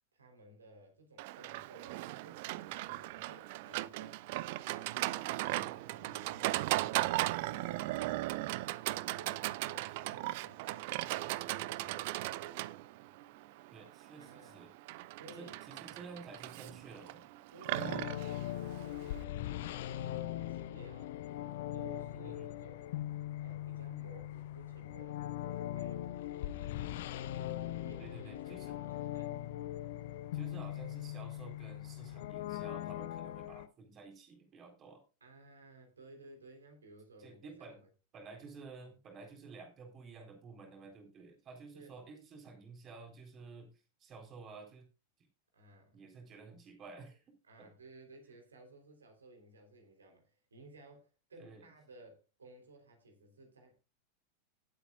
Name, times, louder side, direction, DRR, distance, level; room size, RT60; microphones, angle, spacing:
voice 1, 0.1-4.2 4.8-6.6 9.0-12.6 14.2-14.6 15.1-15.6 17.5-21.1 21.7-23.0 23.4-26.1 27.8-29.4 35.2-37.9 38.8-38.9 41.7-41.9 45.5-46.0 47.4-53.7, right 2 dB, 70° right, 3.5 m, -57 dB
Livestock farm animals working animals, 1.2-19.2, right 18 dB, 50° right, 0.5 m, -37 dB
voice 2, 13.7-14.7 15.4-17.3 22.1-22.5 28.0-28.8 30.3-35.0 37.2-37.8 38.1-43.7 44.0-44.8 45.9-47.7 51.4-51.7, right 4 dB, 30° right, 3.8 m, -52 dB
sound 1, 17.7-33.7, left 13 dB, 55° left, 0.7 m, -40 dB
18.5 x 8.2 x 2.4 m
figure-of-eight pair, 90°, 0 cm